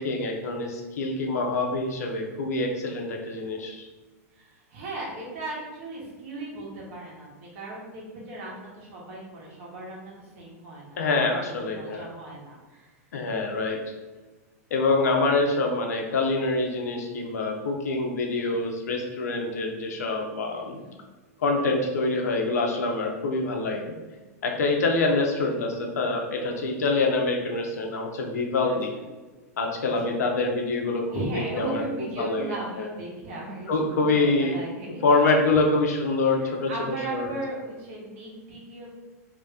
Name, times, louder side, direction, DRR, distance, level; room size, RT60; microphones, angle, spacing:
voice 1, 0.0-3.9 11.0-12.1 13.1-13.8 14.7-20.8 21.4-23.9 24.4-28.9 29.6-32.9 33.7-34.6 34.9-37.3, left 3 dB, 85° left, 2 dB, 0.7 m, -25 dB
voice 2, 4.4-12.9 20.5-20.9 26.1-26.2 28.6-28.8 29.8-29.9 31.1-35.0 36.2-36.3 36.7-38.9, right 2 dB, 60° right, -4 dB, 1.3 m, -37 dB
2.9 x 2.7 x 3.5 m, 1.2 s
hypercardioid pair, 125°, 8 cm